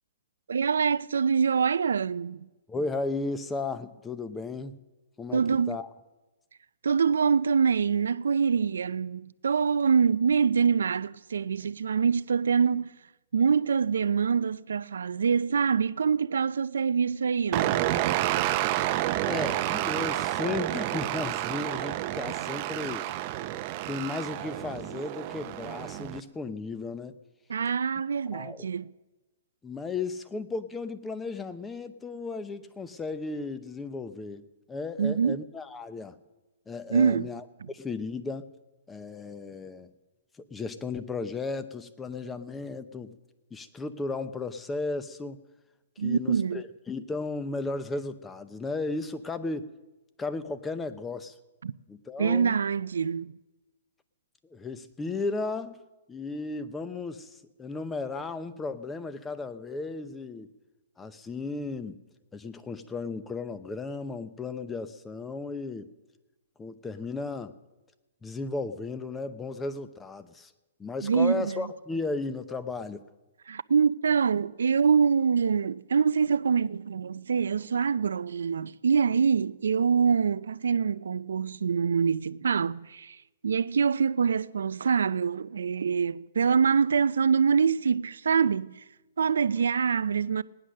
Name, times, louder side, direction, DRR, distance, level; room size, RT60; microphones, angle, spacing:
voice 1, 0.5-2.5 5.3-5.8 6.8-12.9 13.3-17.8 27.5-28.9 35.0-35.4 36.9-37.3 37.6-37.7 46.0-46.6 51.6-51.7 52.2-53.3 71.0-71.7 73.5-83.2 83.4-88.8 89.2-90.4, right 6 dB, 85° right, 0.4 m, -25 dB
voice 2, 2.7-4.8 5.2-5.9 19.3-23.1 23.9-27.2 28.3-28.7 29.6-36.2 36.7-38.5 38.9-39.9 40.4-43.2 43.5-45.4 46.0-49.7 50.2-51.4 51.9-52.6 54.5-55.8 56.1-60.5 61.0-62.0 62.3-65.9 66.6-67.5 68.2-70.5 70.8-73.0, left 3 dB, 10° left, 0.7 m, -35 dB
sound 1, 17.5-26.2, right 14 dB, 35° right, 0.6 m, -30 dB
18.5 x 9.9 x 6.4 m
hypercardioid pair, 150°, 0 cm